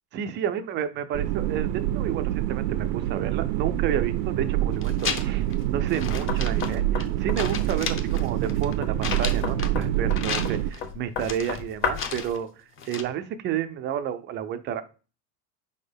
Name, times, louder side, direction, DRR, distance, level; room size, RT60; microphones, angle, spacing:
voice 1, 0.1-12.5 12.9-14.8, right 9 dB, 25° right, 10 dB, 0.3 m, -31 dB
sound 1, 1.1-10.7, right 13 dB, 75° right, 0.6 m, -26 dB
sound 2, 4.7-5.5 5.9-7.1 7.4-9.8 10.1-10.8 11.2-12.4 12.8-13.0, left 6 dB, 25° left, 0.7 m, -34 dB
Knock, 6.3-12.2, left 6 dB, 75° left, 1.6 m, -34 dB
5.0 x 4.3 x 5.0 m, 0.34 s
supercardioid pair, 130°, 49 cm